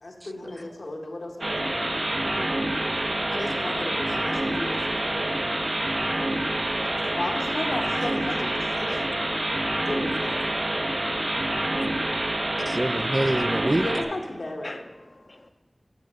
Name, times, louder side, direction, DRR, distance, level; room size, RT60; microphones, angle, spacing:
voice 1, 0.0-2.0 3.3-5.5 7.1-9.0 9.7-10.4 13.7-14.8, left 1 dB, 90° left, 1.1 m, -35 dB
sound 1, 1.4-14.0, right 1 dB, 65° right, 0.9 m, -27 dB
voice 2, 2.3-2.8 8.9-9.0 10.4-10.9 11.8-11.9 13.3-13.4 14.6-14.8 15.2-15.5, left 2 dB, 55° left, 0.5 m, -44 dB
voice 3, 2.8-3.3 5.4-5.5 6.1-6.3 6.7-7.0 12.7-13.9, right 1 dB, 40° right, 0.4 m, -28 dB
7.0 x 6.7 x 6.0 m
wide cardioid pair, 50°, 0 cm